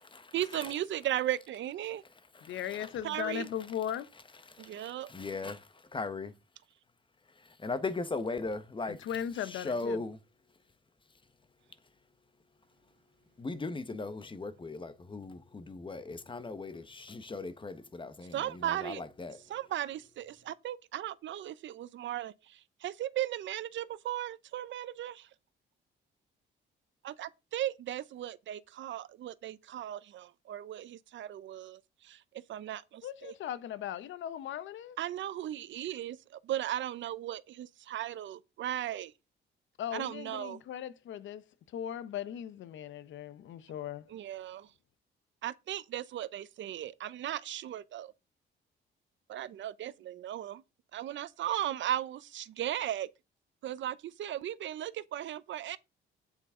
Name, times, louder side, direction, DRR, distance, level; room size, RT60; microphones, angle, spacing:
voice 1, 0.3-2.0 3.0-3.5 4.6-5.1 18.3-19.0 19.5-25.3 27.0-32.2 32.5-33.3 35.0-36.2 36.5-37.4 37.9-39.1 39.9-40.6 44.1-44.7 45.4-48.1 49.3-50.6 50.9-53.1 53.6-55.8, right 12 dB, 70° right, 0.8 m, -36 dB
voice 2, 2.4-4.1 8.9-10.0 33.0-35.0 39.8-41.4 41.7-44.1, left 10 dB, 75° left, 0.9 m, -38 dB
voice 3, 4.5-5.7 5.9-6.3 7.6-9.0 9.5-10.2 13.4-19.4, left 3 dB, 25° left, 1.4 m, -38 dB
9.0 x 8.1 x 3.8 m
cardioid pair, 90°, 20 cm